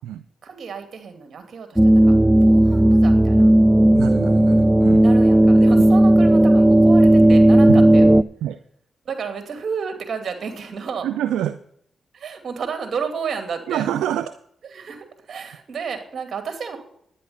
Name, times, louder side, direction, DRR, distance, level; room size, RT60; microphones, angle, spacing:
voice 1, 0.4-2.1 2.4-3.5 5.0-8.1 9.0-11.1 12.1-13.9 14.7-16.8, right 6 dB, 65° right, 7 dB, 2.4 m, -31 dB
sound 1, 1.8-8.2, right 1 dB, 10° right, 0.4 m, -13 dB
voice 2, 3.9-5.0 7.7-7.9 8.4-8.6 11.0-11.6 13.7-14.4, right 11 dB, 90° right, 12 dB, 0.4 m, -26 dB
10.5 x 9.8 x 5.6 m, 0.69 s
supercardioid pair, 55°, 0 cm